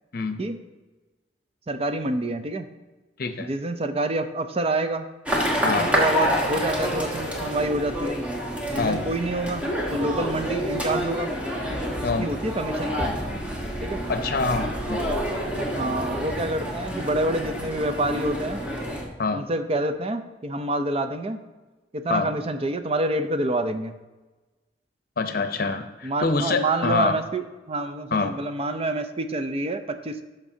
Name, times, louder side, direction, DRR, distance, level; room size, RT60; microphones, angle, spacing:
voice 1, 1.7-2.7 3.4-5.1 5.6-8.2 8.7-11.3 12.0-13.1 13.8-14.0 15.5-18.7 19.3-21.4 21.9-24.0 26.0-30.2, right 2 dB, 35° right, 9 dB, 0.5 m, -27 dB
voice 2, 3.2-3.5 5.6-5.9 8.8-9.0 12.0-12.3 14.1-15.1 19.2-19.4 22.1-22.3 25.2-27.2 28.1-28.4, left 3 dB, 55° left, 8 dB, 0.7 m, -25 dB
sound 1, 5.3-19.0, equal, 5° right, 1.3 m, -28 dB
13.0 x 5.2 x 2.8 m, 1.2 s
head